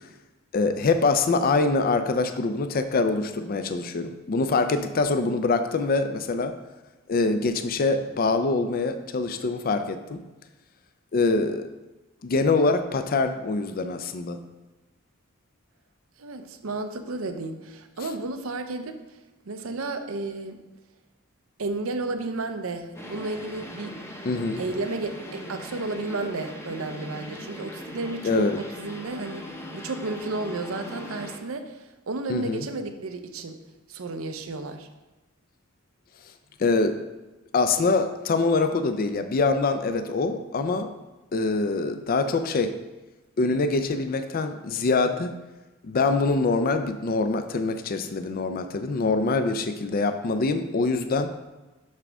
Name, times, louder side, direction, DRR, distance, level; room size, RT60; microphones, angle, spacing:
voice 1, 0.5-6.5 7.1-10.2 11.1-11.7 12.2-14.4 24.3-24.6 28.2-28.6 32.3-32.6 36.6-37.0 37.5-40.9 41.3-42.7 43.4-45.4 45.8-51.3, left 3 dB, 45° left, 9 dB, 0.4 m, -24 dB
voice 2, 16.2-19.0 19.4-20.6 21.6-23.9 24.6-33.6 33.9-34.9, right 2 dB, 85° right, 8 dB, 0.7 m, -32 dB
shortwave layered, 22.9-31.4, left 1 dB, 15° left, 0.7 m, -40 dB
7.5 x 6.1 x 3.4 m, 1.1 s
head